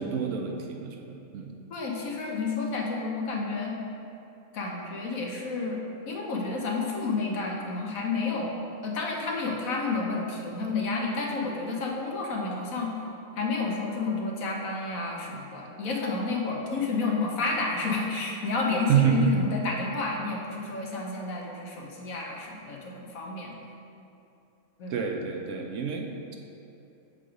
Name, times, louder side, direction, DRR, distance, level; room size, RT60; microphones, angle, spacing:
voice 1, 0.0-1.5 18.9-19.3 24.9-26.4, right 7 dB, 65° right, 2 dB, 0.8 m, -27 dB
voice 2, 1.7-3.8 4.5-5.8 6.1-8.5 8.8-12.9 13.4-23.5 24.8-24.9, left 3 dB, 75° left, -1 dB, 1.3 m, -30 dB
6.8 x 3.8 x 5.0 m, 2.8 s
omnidirectional pair, 1.5 m